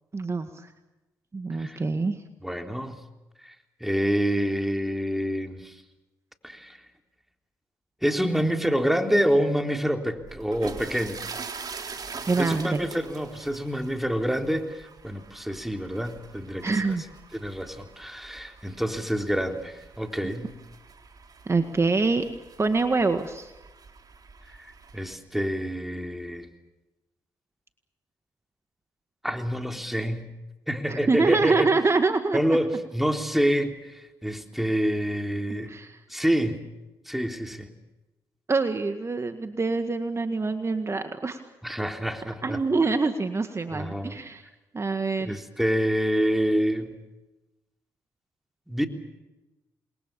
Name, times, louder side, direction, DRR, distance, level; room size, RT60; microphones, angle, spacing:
voice 1, 0.1-0.7 1.3-2.2 12.3-12.8 16.6-17.0 21.5-22.2 22.6-23.5 30.9-32.4 35.7-36.0 38.5-41.4 42.4-44.4 44.7-45.4, right 3 dB, 35° right, 8 dB, 1.9 m, -25 dB
voice 2, 2.4-3.0 3.4-3.5 3.8-5.8 6.4-6.8 8.0-11.2 12.4-16.8 17.3-20.5 24.6-26.5 29.2-30.3 30.7-31.7 32.3-35.7 36.1-36.6 37.1-37.7 41.6-42.6 43.7-44.2 45.2-46.9 48.7-48.9, equal, 5° right, 5 dB, 3.6 m, -27 dB
sound 1, 10.2-25.2, right 5 dB, 50° right, 3.6 m, -44 dB
28.5 x 22.0 x 7.1 m, 1.0 s
supercardioid pair, 50°, 8 cm